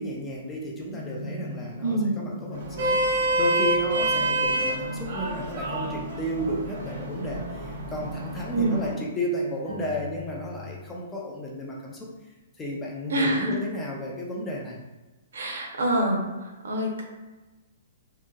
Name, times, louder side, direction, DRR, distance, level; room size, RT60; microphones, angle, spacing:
voice 1, 0.0-12.1 12.6-14.8, equal, 10° left, -3 dB, 0.3 m, -33 dB
sound 1, 0.9-10.8, equal, 70° left, 0.6 m, -40 dB
voice 2, 1.8-2.1 8.5-8.8 13.1-13.6 15.3-16.2 16.6-17.0, right 1 dB, 75° right, 0 dB, 0.7 m, -25 dB
Vehicle horn car horn honking, 2.5-8.9, right 1 dB, 45° right, 0.5 m, -28 dB
2.8 x 2.5 x 2.3 m, 1.1 s
hypercardioid pair, 175°, 0 cm